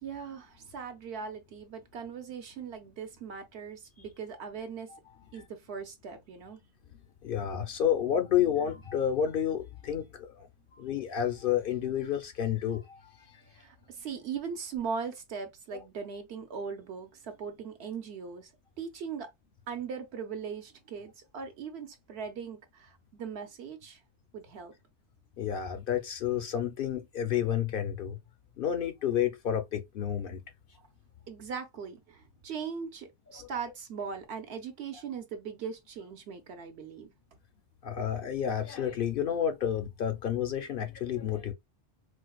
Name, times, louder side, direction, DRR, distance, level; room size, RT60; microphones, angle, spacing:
voice 1, 0.0-4.9 5.3-6.6 13.5-18.5 18.8-19.3 19.7-24.0 24.3-24.7 30.8-30.9 31.3-37.1, right 6 dB, 70° right, 1.0 m, -39 dB
voice 2, 7.2-10.5 10.7-13.4 25.4-28.2 28.6-30.4 33.4-33.5 37.8-41.5, left 9 dB, 60° left, 0.6 m, -30 dB
4.4 x 2.1 x 2.3 m
omnidirectional pair, 1.2 m